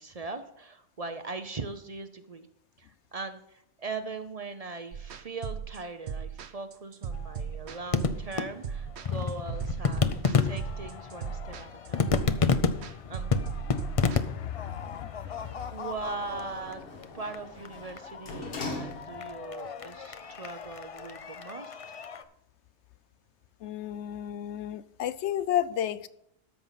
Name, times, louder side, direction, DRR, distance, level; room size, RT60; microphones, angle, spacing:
voice 1, 0.0-2.5 2.8-12.1 12.8-13.3 15.7-16.8 17.1-21.8, right 3 dB, 40° right, 0.7 m, -40 dB
sound 1, 4.9-14.2, right 7 dB, 75° right, 1.1 m, -37 dB
sound 2, 7.1-22.2, left 5 dB, 40° left, 0.5 m, -32 dB
voice 2, 13.7-15.5 23.6-26.1, left 11 dB, 85° left, 0.9 m, -33 dB
Sliding door, 15.4-19.5 20.0-20.1, left 3 dB, 60° left, 1.4 m, -42 dB
13.5 x 5.6 x 5.7 m
omnidirectional pair, 1.1 m